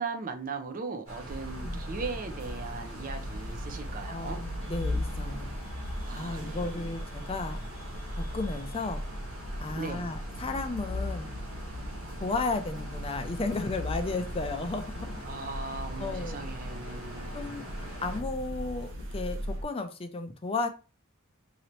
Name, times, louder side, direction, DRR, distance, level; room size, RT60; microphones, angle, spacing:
voice 1, 0.0-4.4 6.1-6.9 9.8-10.1 15.2-17.5, right 4 dB, 40° right, 0.5 m, -38 dB
sound 1, 1.1-18.2, equal, 80° right, 1.6 m, -43 dB
sound 2, 1.3-19.6, left 1 dB, 60° right, 0.9 m, -38 dB
voice 2, 4.1-5.6 6.2-7.6 8.2-9.0 9.6-11.3 12.2-15.2 16.0-16.5 17.3-20.7, left 3 dB, 25° left, 0.4 m, -34 dB
3.9 x 2.9 x 3.0 m
head